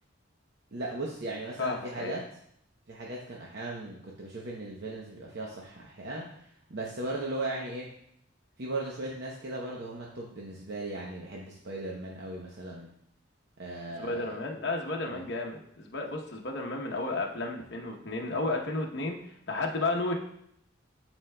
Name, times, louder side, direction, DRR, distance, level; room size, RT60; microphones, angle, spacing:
voice 1, 0.7-2.2 2.9-7.9 8.6-12.9 13.6-14.3 15.0-15.3, right 2 dB, 55° right, -2 dB, 0.8 m, -37 dB
voice 2, 1.6-2.1 14.0-19.2 19.5-20.1, left 2 dB, 60° left, 1 dB, 0.9 m, -32 dB
11.5 x 4.5 x 2.2 m, 0.72 s
head